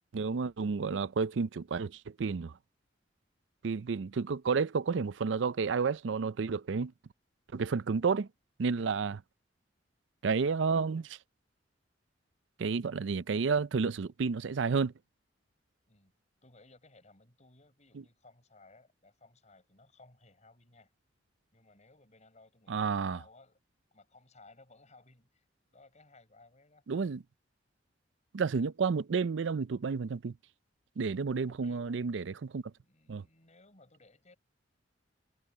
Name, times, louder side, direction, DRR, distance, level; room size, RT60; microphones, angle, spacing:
voice 1, 0.1-2.5 3.6-6.9 7.5-8.3 8.6-9.2 10.2-11.2 12.6-14.9 22.7-23.2 26.9-27.2 28.3-30.3 31.0-32.6 33.1-33.2, right 5 dB, 70° right, 0.5 m, -31 dB
voice 2, 16.4-20.9 21.5-23.6 23.9-25.4 25.7-26.8 31.4-32.0 32.8-34.4, left 2 dB, 40° left, 7.6 m, -60 dB
head